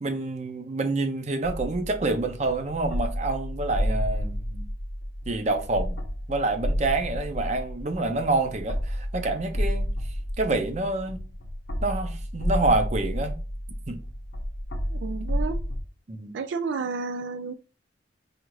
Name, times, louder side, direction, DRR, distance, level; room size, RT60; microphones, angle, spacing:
voice 1, 0.0-4.7 5.3-6.0 6.3-9.9 10.4-11.3 11.8-13.4 13.9-14.0 16.1-16.4, right 2 dB, 40° right, 0.6 m, -27 dB
sound 1, 1.4-15.8, equal, 60° left, 0.6 m, -31 dB
voice 2, 14.9-15.6 16.3-17.5, right 4 dB, 85° right, 0.4 m, -31 dB
4.9 x 2.4 x 3.0 m
head